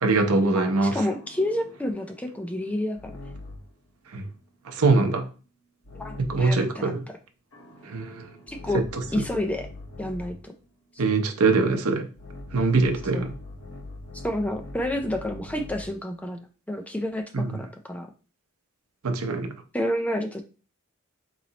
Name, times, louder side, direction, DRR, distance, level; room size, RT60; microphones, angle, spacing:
voice 1, 0.0-1.0 4.1-4.3 4.6-5.3 6.2-7.1 7.8-8.3 9.2-9.3 11.0-12.1 12.5-13.3 17.3-17.6 19.0-19.5, right 3 dB, 80° right, 0.7 m, -23 dB
voice 2, 0.6-3.1 5.9-6.9 8.5-8.8 9.1-9.7 10.0-10.5 13.1-13.2 14.2-18.1 19.7-20.4, left 1 dB, 5° left, 0.3 m, -29 dB
sound 1, 1.1-3.8 5.8-6.7 7.5-10.5 12.2-16.0, left 2 dB, 60° left, 0.9 m, -42 dB
3.9 x 3.1 x 2.8 m
head